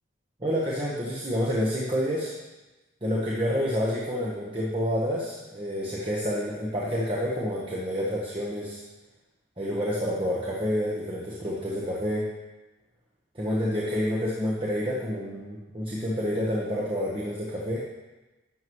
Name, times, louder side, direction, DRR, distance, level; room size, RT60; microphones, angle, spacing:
voice 1, 0.4-2.4 3.0-8.8 9.6-12.3 13.3-17.8, equal, 25° right, -5 dB, 1.1 m, -28 dB
11.5 x 7.8 x 3.1 m, 1.1 s
head